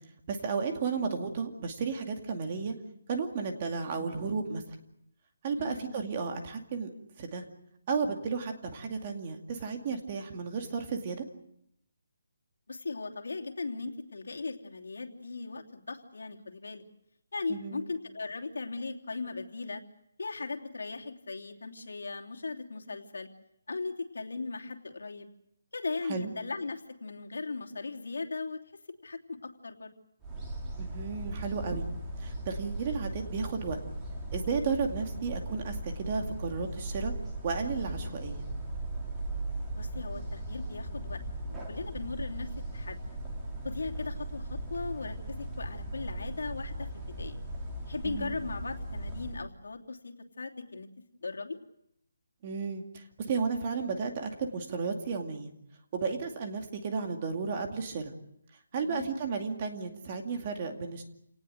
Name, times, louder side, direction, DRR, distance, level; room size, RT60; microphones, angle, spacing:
voice 1, 0.3-2.7 3.1-4.8 5.4-6.9 7.2-7.4 7.9-11.2 17.5-17.8 26.1-26.3 30.8-31.8 32.2-33.8 34.3-37.1 37.4-38.5 48.0-48.3 52.4-55.5 55.9-58.1 58.7-61.0, right 5 dB, 25° right, 4 dB, 2.3 m, -33 dB
voice 2, 5.6-5.9 12.7-16.8 17.3-19.8 20.2-23.3 23.7-25.3 25.7-28.6 29.0-29.9 39.7-43.0 43.6-46.9 47.2-47.4 47.9-51.6 58.8-59.1, left 3 dB, 85° left, 4 dB, 3.0 m, -38 dB
sound 1, 30.2-49.4, right 1 dB, 10° right, 2.9 m, -38 dB
28.5 x 19.0 x 7.9 m, 0.77 s
hypercardioid pair, 175°, 0 cm